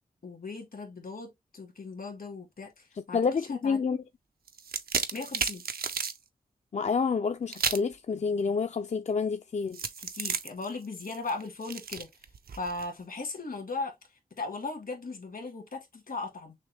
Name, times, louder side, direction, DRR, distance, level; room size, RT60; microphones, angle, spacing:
voice 1, 0.2-3.8 5.1-5.6 10.0-12.1 12.5-13.9 14.4-16.5, left 3 dB, 75° left, 1.8 m, -38 dB
voice 2, 3.1-4.0 6.7-9.8, left 5 dB, 50° left, 0.4 m, -28 dB
sound 1, 4.5-6.2 7.5-7.9 9.7-12.9, right 6 dB, 85° right, 0.6 m, -33 dB
6.3 x 2.2 x 3.3 m
wide cardioid pair, 65°, 15 cm